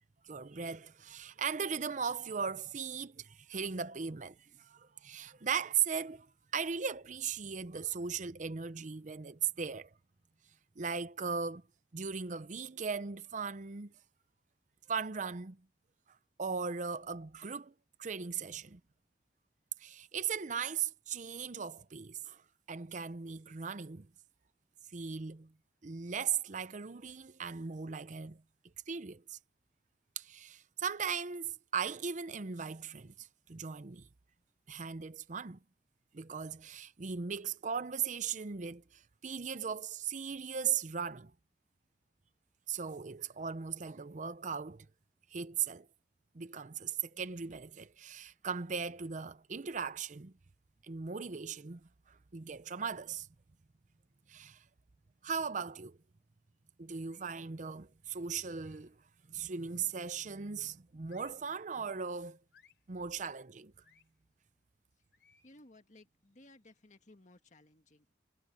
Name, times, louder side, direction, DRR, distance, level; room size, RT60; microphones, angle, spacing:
voice 1, 0.2-6.3 6.5-9.9 10.8-11.6 11.9-13.9 14.9-15.6 16.4-17.7 18.0-18.8 19.8-22.4 22.7-24.1 24.9-25.5 25.8-28.4 28.9-29.4 30.2-34.1 34.7-35.6 36.1-41.3 42.7-44.9 45.3-45.9 46.3-50.3 50.8-51.8 52.1-53.3 54.3-54.6 55.2-56.0 56.8-58.9 59.3-62.4 62.9-63.7, right 6 dB, 45° right, 0.6 m, -38 dB
sound 1, 57.0-57.5 58.5-59.0 59.8-60.3 61.0-61.5 62.5-62.9 63.8-64.1 65.1-65.6, left 7 dB, 75° left, 3.4 m, -67 dB
voice 2, 65.4-68.2, left 2 dB, 45° left, 1.8 m, -59 dB
head